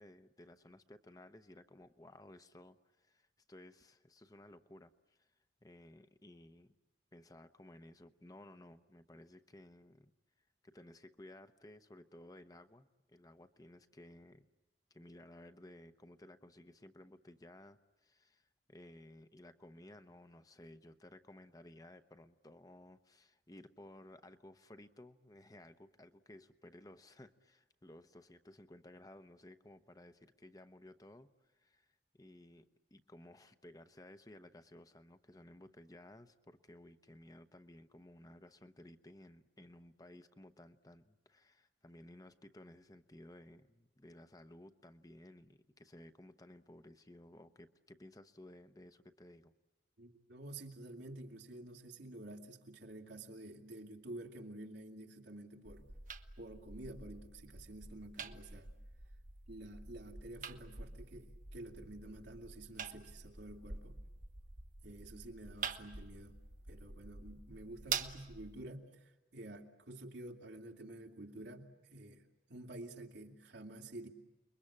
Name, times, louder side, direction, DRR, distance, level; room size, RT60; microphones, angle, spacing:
voice 1, 0.0-5.3 5.6-6.7 7.1-10.1 10.6-14.5 14.9-49.5, left 1 dB, 20° left, 9 dB, 0.8 m, -57 dB
voice 2, 50.0-55.9 56.4-58.7 59.5-64.0 64.8-66.4 66.6-72.2 72.5-74.1, right 1 dB, 80° right, 2 dB, 2.6 m, -50 dB
sound 1, 55.7-68.7, right 6 dB, 45° right, 1.1 m, -47 dB
29.5 x 22.0 x 8.7 m, 1.1 s
head